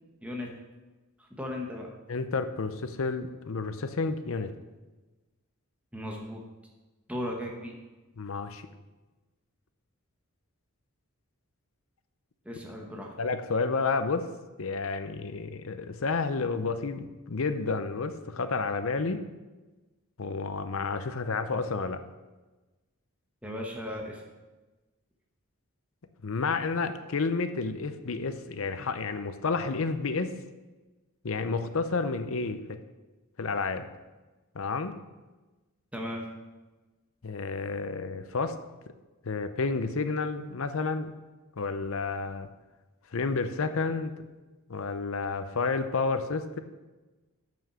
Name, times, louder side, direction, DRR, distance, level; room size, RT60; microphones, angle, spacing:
voice 1, 1.4-1.9 5.9-6.4 7.1-7.8 12.4-13.2 23.4-24.2 35.9-36.3, left 1 dB, 5° right, 0 dB, 1.0 m, -36 dB
voice 2, 2.1-4.5 8.2-8.6 13.2-14.3 14.6-19.2 20.2-22.0 26.2-30.4 31.2-32.8 33.4-33.8 34.5-35.0 37.2-38.5 39.2-41.1 41.6-42.5 43.1-44.1 44.7-46.6, left 4 dB, 65° left, 10 dB, 0.6 m, -30 dB
7.1 x 6.3 x 6.8 m, 1.2 s
head